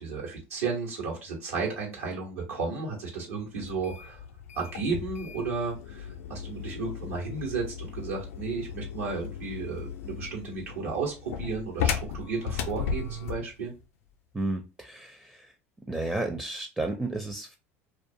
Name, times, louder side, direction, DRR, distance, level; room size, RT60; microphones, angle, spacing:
voice 1, 0.0-4.2 4.5-13.7, right 4 dB, 85° right, -2 dB, 1.2 m, -33 dB
sound 1, 3.6-13.5, left 7 dB, 80° left, 0.4 m, -36 dB
voice 2, 14.3-15.5 15.9-17.6, right 2 dB, 10° right, 4 dB, 0.5 m, -32 dB
2.4 x 2.3 x 2.7 m, 0.28 s
hypercardioid pair, 80°, 8 cm